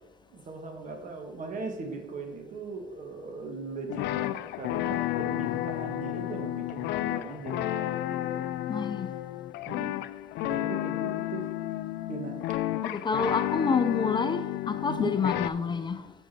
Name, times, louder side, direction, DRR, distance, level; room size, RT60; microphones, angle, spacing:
voice 1, 0.3-8.5 9.7-10.0 10.4-11.5 12.1-12.4 14.9-15.1, right 3 dB, 50° right, 1.7 m, -39 dB
sound 1, 3.9-15.5, left 15 dB, 80° left, 0.4 m, -32 dB
voice 2, 8.7-9.1 12.8-16.1, left 5 dB, 25° left, 0.5 m, -28 dB
8.0 x 6.4 x 4.4 m
cardioid pair, 110°, 17 cm